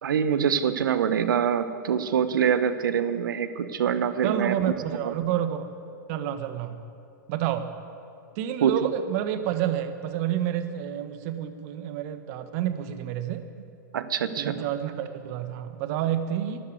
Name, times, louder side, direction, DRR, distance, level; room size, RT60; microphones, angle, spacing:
voice 1, 0.0-4.7 5.0-5.1 8.6-8.9 13.9-14.6, right 8 dB, 75° right, 12 dB, 1.0 m, -25 dB
voice 2, 4.2-5.7 6.1-6.8 7.3-7.7 8.4-13.4 14.4-16.6, right 10 dB, 50° right, 9 dB, 1.3 m, -29 dB
13.0 x 11.0 x 9.5 m, 2.4 s
hypercardioid pair, 115°, 11 cm